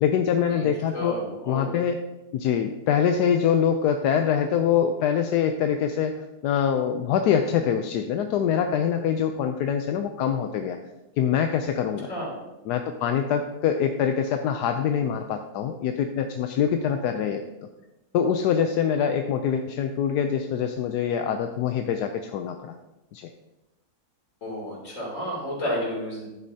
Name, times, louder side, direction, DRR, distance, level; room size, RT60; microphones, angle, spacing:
voice 1, 0.0-1.1 1.5-2.0 2.3-10.8 11.2-12.1 12.7-17.4 18.1-22.7 23.1-23.3, left 8 dB, 85° left, 6 dB, 1.2 m, -24 dB
voice 2, 0.9-1.7 12.1-12.4 24.4-26.3, equal, 55° left, -3 dB, 3.4 m, -31 dB
10.5 x 8.4 x 2.8 m, 1.0 s
omnidirectional pair, 1.7 m